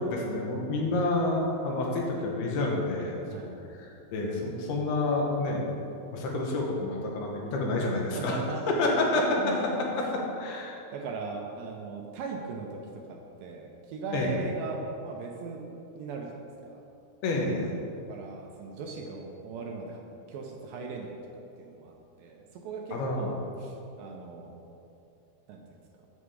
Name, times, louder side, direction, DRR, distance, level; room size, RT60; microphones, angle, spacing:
voice 1, 0.0-3.4 3.8-5.7 6.1-8.4 8.7-9.6 10.0-10.8 14.1-14.3 17.2-17.7 22.9-23.3, left 2 dB, 80° left, -1 dB, 3.1 m, -29 dB
voice 2, 3.2-3.6 8.1-8.8 9.4-9.7 10.9-15.6 16.0-16.8 18.1-20.0 20.3-21.1 21.6-24.5 25.5-25.8, right 4 dB, 80° right, 1 dB, 2.3 m, -39 dB
8.2 x 7.2 x 4.9 m, 2.7 s
omnidirectional pair, 4.5 m